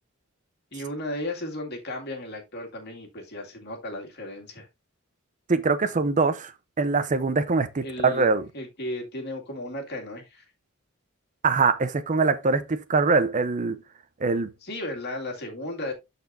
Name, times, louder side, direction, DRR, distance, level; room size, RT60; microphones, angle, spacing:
voice 1, 0.7-4.7 7.8-10.4 14.6-15.9, left 1 dB, 50° left, 2.2 m, -35 dB
voice 2, 5.5-6.5 6.8-8.5 11.4-13.8 14.2-14.5, right 4 dB, 35° right, 0.6 m, -23 dB
12.5 x 4.3 x 2.6 m
head